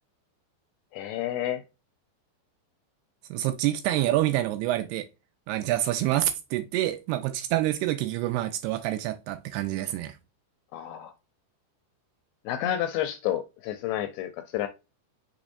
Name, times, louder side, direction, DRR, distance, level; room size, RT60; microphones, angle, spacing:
voice 1, 0.9-1.6 10.7-11.1 12.5-14.7, left 12 dB, 85° left, 2.3 m, -30 dB
voice 2, 3.3-5.1 5.5-10.2, right 14 dB, 85° right, 2.4 m, -27 dB
6.2 x 3.2 x 2.5 m
omnidirectional pair, 4.9 m